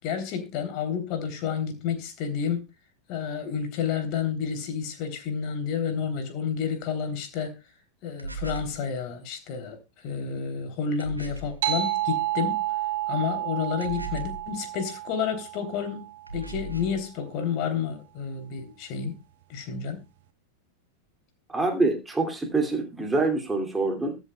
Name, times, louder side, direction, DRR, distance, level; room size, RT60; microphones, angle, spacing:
voice 1, 0.0-2.7 3.1-7.6 8.0-12.7 13.1-16.1 16.3-19.2 19.5-20.0, left 7 dB, 40° left, 3.3 m, -30 dB
sound 1, 8.2-8.8 11.0-11.6 13.8-14.5 16.3-17.0, right 2 dB, 85° right, 2.6 m, -37 dB
sound 2, 11.6-16.6, right 13 dB, 55° right, 1.1 m, -30 dB
voice 2, 21.5-24.2, right 3 dB, 10° right, 2.5 m, -25 dB
22.5 x 7.7 x 2.3 m
figure-of-eight pair, 90°, 0 cm